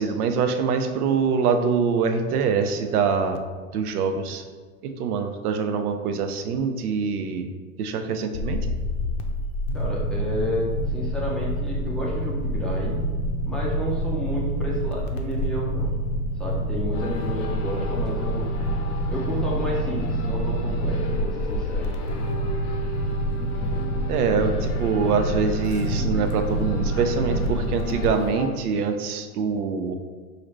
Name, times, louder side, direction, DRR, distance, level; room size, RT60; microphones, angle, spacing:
voice 1, 0.0-3.4 3.7-4.4 4.8-7.5 7.8-8.6 23.4-23.5 24.1-29.9, right 5 dB, 80° right, 6 dB, 0.6 m, -24 dB
sound 1, 8.3-28.1, equal, 45° left, 0.6 m, -27 dB
voice 2, 9.7-13.1 13.5-15.9 16.4-18.5 19.1-22.0, equal, ahead, -5 dB, 0.4 m, -31 dB
sound 2, 16.9-28.5, left 2 dB, 90° left, 0.9 m, -36 dB
4.9 x 2.6 x 3.1 m, 1.4 s
hypercardioid pair, 115°, 44 cm